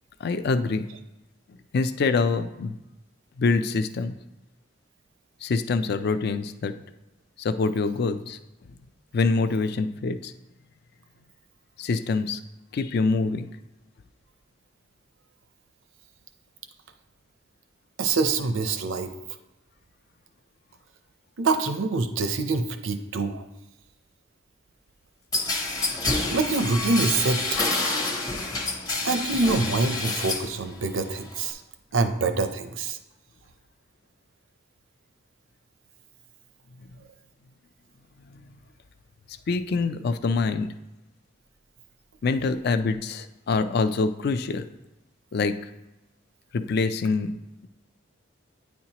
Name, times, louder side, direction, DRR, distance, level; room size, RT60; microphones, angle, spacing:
voice 1, 0.2-0.9 1.7-2.8 3.4-4.1 5.4-6.7 7.4-8.4 9.1-10.3 11.8-12.4 12.7-13.5 38.3-38.4 39.5-40.7 42.2-44.6 45.3-45.5 46.5-47.4, left 4 dB, 50° left, 11 dB, 0.4 m, -25 dB
voice 2, 18.0-19.1 21.4-23.4 26.3-27.4 29.0-31.6 31.9-33.0, right 3 dB, 70° right, 9 dB, 0.5 m, -25 dB
sound 1, 25.3-30.5 30.9-31.5, left 2 dB, 20° left, 0.7 m, -28 dB
9.3 x 4.4 x 2.9 m, 0.99 s
head